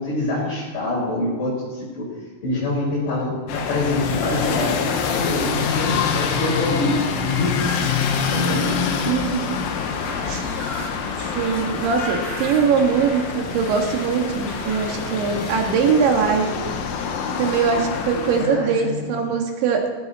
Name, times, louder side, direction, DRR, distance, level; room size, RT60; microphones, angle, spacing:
voice 1, 0.0-2.1 2.4-7.7 8.3-9.0 18.4-19.3, left 2 dB, 75° left, -8 dB, 7.0 m, -25 dB
sound 1, 3.5-18.5, left 6 dB, 90° left, 3.9 m, -26 dB
voice 2, 9.1-9.6 10.3-10.4 11.2-16.5 17.4-19.8, right 6 dB, 75° right, 2 dB, 4.2 m, -21 dB
sound 2, 9.9-15.5, left 1 dB, 30° left, 4.8 m, -35 dB
17.0 x 16.0 x 4.3 m, 1.3 s
omnidirectional pair, 5.4 m